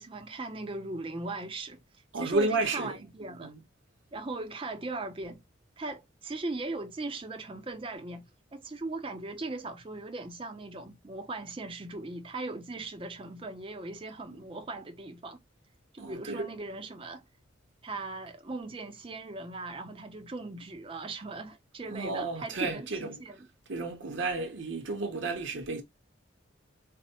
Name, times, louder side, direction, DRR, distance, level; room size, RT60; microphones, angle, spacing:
voice 1, 0.0-1.8 2.2-3.5 4.1-5.4 5.8-8.2 8.5-15.4 15.9-17.3 17.8-23.5, right 2 dB, 25° right, 0.5 m, -39 dB
voice 2, 2.1-3.0 3.4-3.6 14.3-14.4 16.0-16.5 21.9-23.2 23.7-25.8, right 3 dB, 65° right, 0.7 m, -32 dB
4.2 x 2.0 x 2.7 m
head